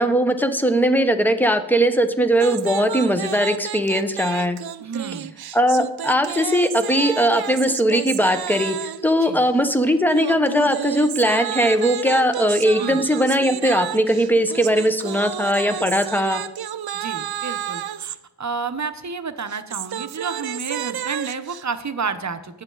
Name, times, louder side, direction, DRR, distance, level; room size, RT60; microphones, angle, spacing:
voice 1, 0.0-4.6 5.5-8.8 9.0-16.4, equal, 5° left, 8 dB, 1.0 m, -19 dB
sound 1, 2.3-9.1 10.1-18.2 19.4-21.6, right 10 dB, 60° right, 0.5 m, -31 dB
voice 2, 4.8-5.3 9.2-9.4 12.8-13.1 16.9-22.6, right 5 dB, 40° right, 10 dB, 0.9 m, -30 dB
18.5 x 7.4 x 3.9 m, 0.96 s
wide cardioid pair, 90°, 43 cm